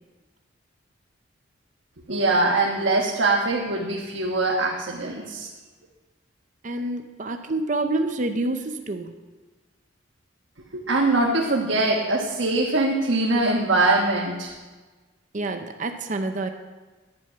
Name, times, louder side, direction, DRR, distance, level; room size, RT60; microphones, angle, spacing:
voice 1, 2.1-5.5 10.7-14.5, right 2 dB, 70° right, -1 dB, 1.4 m, -22 dB
voice 2, 6.6-9.2 15.3-16.5, right 2 dB, 40° right, 6 dB, 0.7 m, -27 dB
10.5 x 9.8 x 5.8 m, 1.3 s
head